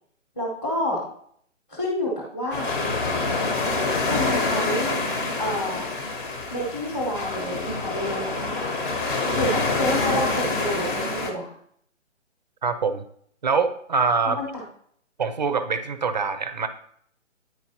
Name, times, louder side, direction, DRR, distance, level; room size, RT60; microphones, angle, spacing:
voice 1, 0.4-1.1 1.7-2.7 4.0-5.0 5.4-5.9 6.5-8.4 9.3-11.5 14.2-14.6, left 1 dB, 10° left, -6 dB, 0.9 m, -28 dB
sound 1, 2.5-11.3, left 3 dB, 45° left, 1.1 m, -26 dB
voice 2, 12.6-13.0 13.4-14.4 15.2-16.7, right 5 dB, 35° right, 11 dB, 0.4 m, -24 dB
9.3 x 4.6 x 2.8 m, 0.65 s
hypercardioid pair, 150°, 38 cm